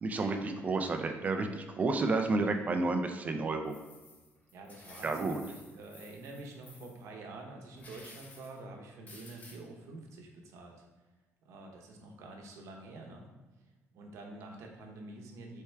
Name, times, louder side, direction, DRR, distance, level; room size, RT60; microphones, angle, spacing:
voice 1, 0.0-3.8 5.0-5.4, right 3 dB, 30° right, 6 dB, 0.3 m, -31 dB
sound 1, 3.6-7.0 7.7-8.6 9.1-9.6, left 2 dB, 30° left, 0.8 m, -54 dB
voice 2, 4.5-10.8 11.4-13.3 13.9-15.6, right 2 dB, 70° right, 2 dB, 0.8 m, -47 dB
4.5 x 3.3 x 3.3 m, 1.2 s
cardioid pair, 140°, 5 cm